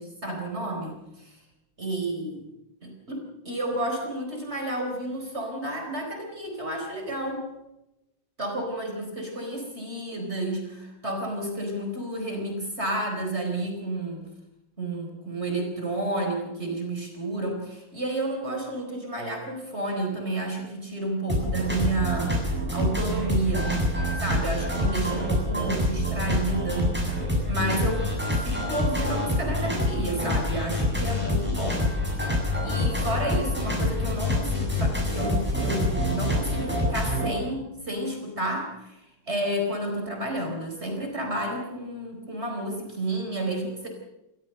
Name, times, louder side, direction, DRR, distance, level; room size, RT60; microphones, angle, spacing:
voice 1, 0.0-1.4 1.8-2.4 2.8-7.5 8.4-14.2 14.8-23.7 24.2-26.9 27.5-31.9 32.2-43.9, right 1 dB, 35° right, 2 dB, 4.7 m, -31 dB
sound 1, 21.3-37.3, left 1 dB, 5° right, 8.0 m, -26 dB
29.0 x 14.0 x 6.7 m, 0.93 s
omnidirectional pair, 2.0 m